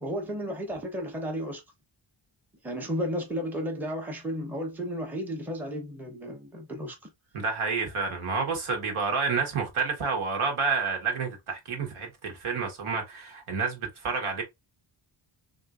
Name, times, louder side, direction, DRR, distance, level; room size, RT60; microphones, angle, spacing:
voice 1, 0.0-1.6 2.6-7.0, equal, 5° right, 0.7 m, -33 dB
voice 2, 7.3-14.4, right 5 dB, 75° right, 1.2 m, -29 dB
3.8 x 2.6 x 2.4 m
wide cardioid pair, 160°, 50 cm